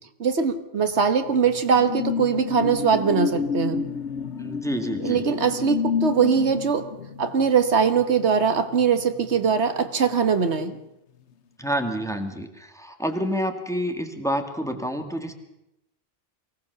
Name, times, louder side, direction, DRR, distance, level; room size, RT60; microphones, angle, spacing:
voice 1, 0.2-3.8 5.0-6.9 7.2-10.8, right 6 dB, 75° right, 9 dB, 1.6 m, -21 dB
sound 1, 0.9-9.9 10.2-10.5, left 6 dB, 80° left, 1.3 m, -30 dB
voice 2, 4.4-5.2 11.6-15.3, equal, 5° left, 5 dB, 2.1 m, -28 dB
23.5 x 18.0 x 6.9 m, 0.87 s
omnidirectional pair, 1.2 m